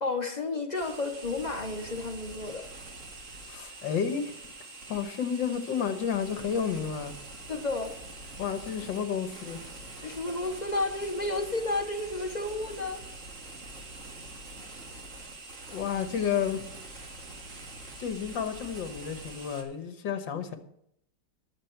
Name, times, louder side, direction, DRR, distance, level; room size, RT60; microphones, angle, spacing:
voice 1, 0.0-2.7 7.5-7.9 10.0-13.0, left 2 dB, 55° left, 0.4 m, -32 dB
sound 1, 0.7-19.6, right 2 dB, 40° right, 2.2 m, -45 dB
voice 2, 3.5-4.4 4.9-7.2 8.4-9.6 15.7-16.7 18.0-20.6, left 7 dB, 75° left, 1.8 m, -31 dB
20.5 x 7.3 x 4.5 m
omnidirectional pair, 2.0 m